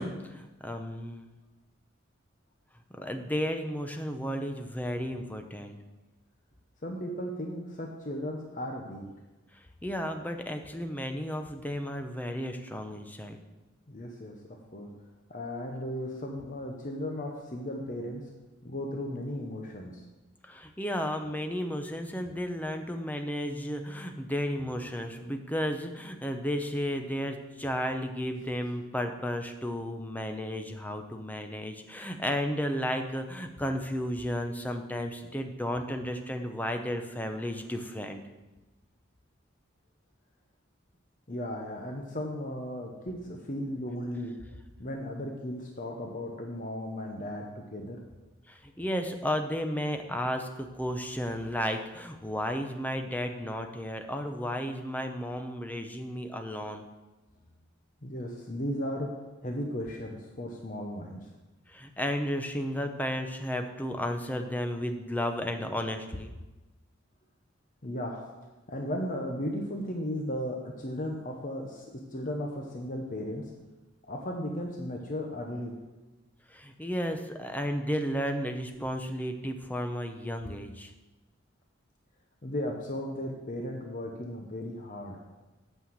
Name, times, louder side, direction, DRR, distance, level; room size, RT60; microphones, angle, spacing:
voice 1, 0.0-1.3 2.9-5.8 9.5-13.4 20.4-38.2 48.5-56.9 61.7-66.3 76.5-80.9, equal, 10° left, 6 dB, 0.7 m, -33 dB
voice 2, 6.8-9.0 13.9-14.4 14.7-14.9 15.3-18.2 18.6-20.0 41.3-44.3 44.8-48.0 58.0-59.2 59.4-61.2 67.8-68.2 68.7-73.4 74.1-75.7 82.4-85.2, left 1 dB, 40° left, 1 dB, 0.9 m, -35 dB
8.6 x 5.7 x 7.3 m, 1.1 s
head